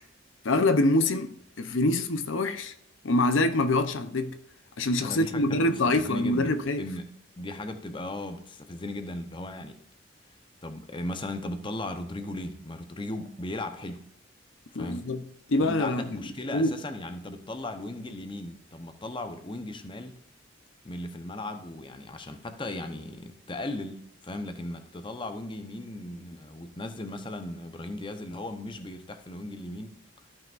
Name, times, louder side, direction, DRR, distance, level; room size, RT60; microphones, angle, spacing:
voice 1, 0.4-2.7 3.0-4.4 4.8-6.9 14.7-15.2 15.5-16.2 16.5-16.8, left 2 dB, 75° left, 0.7 m, -25 dB
voice 2, 5.0-9.8 10.6-14.1 14.8-15.1 15.6-20.2 20.8-29.9, left 1 dB, 25° left, 0.8 m, -37 dB
13.5 x 5.8 x 2.5 m
head